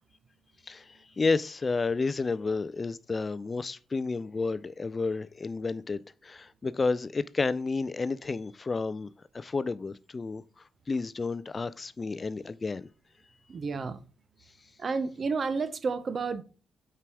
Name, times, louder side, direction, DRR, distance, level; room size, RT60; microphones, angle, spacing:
voice 1, 0.6-12.9, left 4 dB, 30° left, 0.3 m, -31 dB
voice 2, 13.5-14.0 14.8-16.4, right 4 dB, 45° right, 0.7 m, -31 dB
5.9 x 4.7 x 4.7 m
cardioid pair, 90°, 0 cm